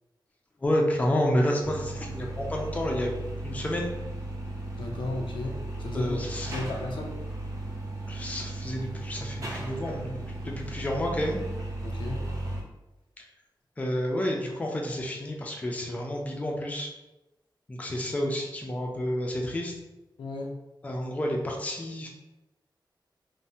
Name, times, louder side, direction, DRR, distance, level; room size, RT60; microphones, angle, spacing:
voice 1, 0.6-3.1 3.4-3.9 5.9-6.6 8.1-10.2 10.4-11.4 13.8-16.9 17.7-19.7 20.8-22.1, left 1 dB, 15° left, 0 dB, 0.4 m, -30 dB
sound 1, 1.6-12.6, right 2 dB, 40° right, 0.6 m, -36 dB
voice 2, 4.8-7.2 11.8-12.2 20.2-20.6, left 2 dB, 85° left, 1 dB, 0.5 m, -35 dB
3.2 x 2.1 x 2.6 m, 1.0 s
wide cardioid pair, 175°, 8 cm